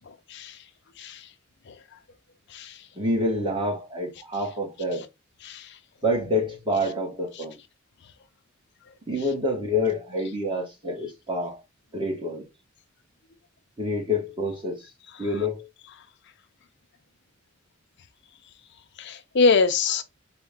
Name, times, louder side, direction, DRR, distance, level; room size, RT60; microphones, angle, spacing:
voice 1, 2.9-5.1 6.0-7.6 9.1-11.6 11.9-12.5 13.8-14.8 15.2-15.7, left 1 dB, 25° right, 1.2 m, -27 dB
voice 2, 19.0-20.0, left 4 dB, 55° left, 0.5 m, -24 dB
4.3 x 2.1 x 3.5 m
head